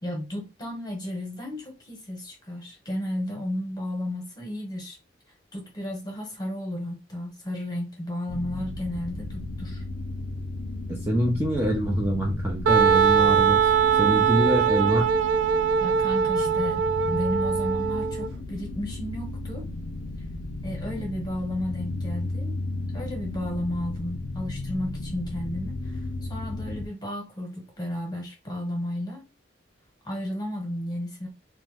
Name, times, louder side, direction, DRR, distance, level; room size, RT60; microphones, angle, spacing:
voice 1, 0.0-5.0 5.5-9.8 15.8-19.7 20.6-22.6 22.9-29.2 30.0-31.3, left 1 dB, 25° left, 1.2 m, -33 dB
sound 1, 8.3-26.9, left 2 dB, 70° left, 0.4 m, -34 dB
voice 2, 10.9-13.6 14.0-15.1, equal, 15° right, 0.6 m, -25 dB
Wind instrument woodwind instrument, 12.7-18.3, right 7 dB, 85° right, 0.3 m, -22 dB
2.7 x 2.2 x 3.3 m
head